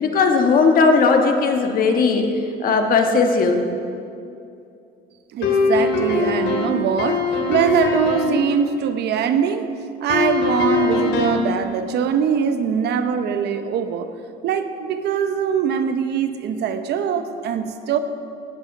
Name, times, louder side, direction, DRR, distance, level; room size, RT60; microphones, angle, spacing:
voice 1, 0.0-2.2 2.6-3.6, left 4 dB, 50° left, 4 dB, 1.5 m, -17 dB
voice 2, 5.3-9.7 10.0-14.1 14.4-18.0, right 7 dB, 65° right, 8 dB, 0.9 m, -22 dB
sound 1, 5.4-8.4 10.1-11.5, left 3 dB, 75° left, 2.6 m, -21 dB
18.0 x 8.1 x 6.0 m, 2.6 s
cardioid pair, 145°, 19 cm